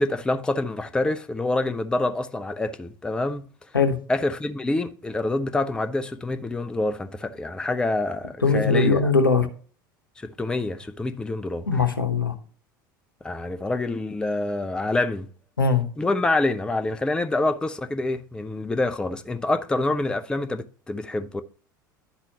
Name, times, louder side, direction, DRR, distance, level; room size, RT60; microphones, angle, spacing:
voice 1, 0.0-3.4 4.1-9.1 10.2-11.7 13.2-15.3 16.0-21.4, left 2 dB, 10° left, 0.4 m, -26 dB
voice 2, 8.4-9.5 11.7-12.3 15.6-15.9, left 4 dB, 80° left, 0.8 m, -20 dB
11.5 x 4.1 x 2.9 m
figure-of-eight pair, 75°, 11 cm